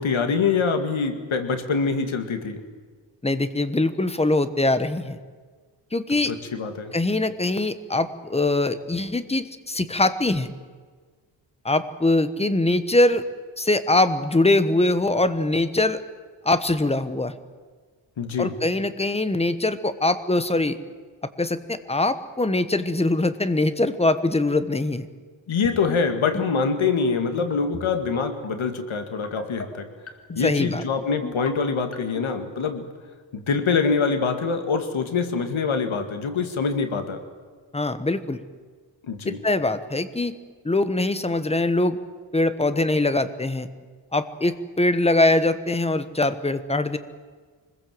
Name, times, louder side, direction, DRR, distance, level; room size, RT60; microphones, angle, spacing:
voice 1, 0.0-2.6 6.3-6.9 18.2-18.5 25.5-29.9 30.3-32.8 33.3-37.2 39.0-39.4, left 5 dB, 75° left, 7 dB, 2.3 m, -24 dB
voice 2, 3.2-5.2 5.9-6.3 6.9-10.5 11.6-13.2 13.6-16.0 16.4-17.3 18.4-20.8 21.4-25.1 30.4-30.8 37.7-38.4 39.2-40.4 40.6-42.0 42.3-43.7 44.1-47.0, left 2 dB, 15° left, 12 dB, 1.1 m, -22 dB
sound 1, 25.5-26.0 26.3-26.6 27.4-27.9 28.2-28.5 29.2-29.7 30.1-30.4 31.1-31.5 31.9-32.3, left 3 dB, 30° left, 2.2 m, -34 dB
25.0 x 20.5 x 7.7 m, 1.5 s
wide cardioid pair, 145°, 48 cm